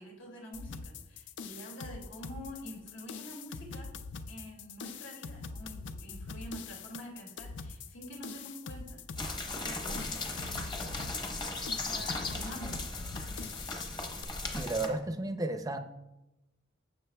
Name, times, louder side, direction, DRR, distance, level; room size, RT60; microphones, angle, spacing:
voice 1, 0.0-3.9 4.3-9.0 9.3-12.9, equal, 80° left, 0 dB, 2.4 m, -47 dB
sound 1, 0.5-14.2, left 4 dB, 65° left, 0.5 m, -43 dB
sound 2, 9.2-14.9, left 2 dB, 20° left, 0.9 m, -37 dB
voice 2, 14.6-15.8, right 2 dB, 20° right, 8 dB, 0.5 m, -33 dB
12.0 x 7.6 x 2.3 m, 0.96 s
head